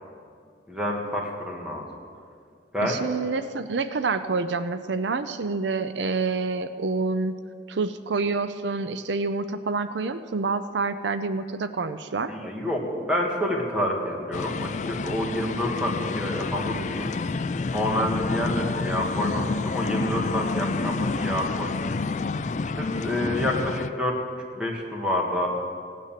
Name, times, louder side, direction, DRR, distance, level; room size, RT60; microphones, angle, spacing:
voice 1, 0.7-1.9 2.7-3.0 12.3-17.1 17.7-22.4 22.8-25.5, left 1 dB, 5° right, -1 dB, 1.8 m, -28 dB
voice 2, 2.8-7.4 7.7-12.3, right 4 dB, 80° right, 11 dB, 0.6 m, -27 dB
sound 1, 14.3-23.9, left 3 dB, 40° left, 0.4 m, -29 dB
16.5 x 9.5 x 7.6 m, 2.3 s
head